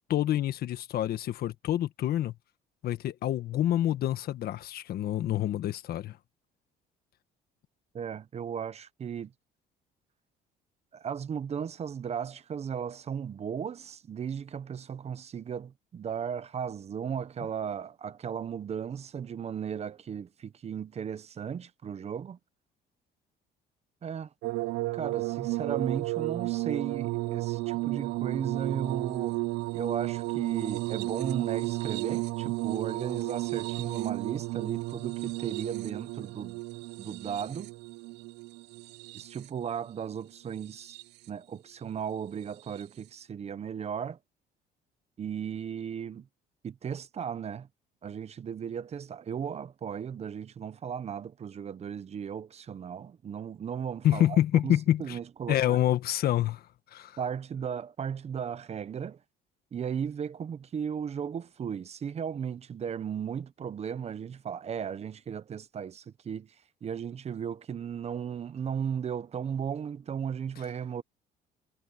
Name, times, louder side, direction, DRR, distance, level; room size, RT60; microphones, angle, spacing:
voice 1, 0.1-2.3 2.8-6.2 54.0-55.2 55.5-56.6 56.9-57.2, left 12 dB, 65° left, 1.5 m, -27 dB
voice 2, 7.9-9.3 10.9-22.4 24.0-24.3 24.9-29.4 29.7-36.6 37.0-37.7 39.1-41.0 41.3-44.2 45.2-46.3 46.6-47.7 48.0-55.8 57.2-59.2 59.7-66.5 66.8-71.0, right 7 dB, 40° right, 1.0 m, -36 dB
sound 1, 24.4-39.7 40.5-41.3 42.7-42.8, right 22 dB, 90° right, 0.6 m, -33 dB
cardioid pair, 110°, 17 cm